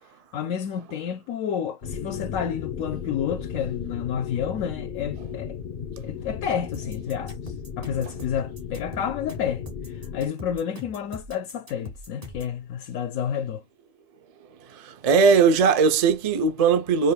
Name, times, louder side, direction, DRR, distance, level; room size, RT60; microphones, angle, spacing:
voice 1, 0.3-5.6 6.0-13.6, left 8 dB, 75° left, 1.0 m, -30 dB
sound 1, 1.8-10.3, left 7 dB, 40° left, 0.8 m, -35 dB
sound 2, 6.7-12.6, left 2 dB, 25° right, 1.8 m, -41 dB
voice 2, 14.7-17.1, right 5 dB, 65° right, 0.3 m, -19 dB
4.9 x 2.5 x 2.2 m
omnidirectional pair, 1.5 m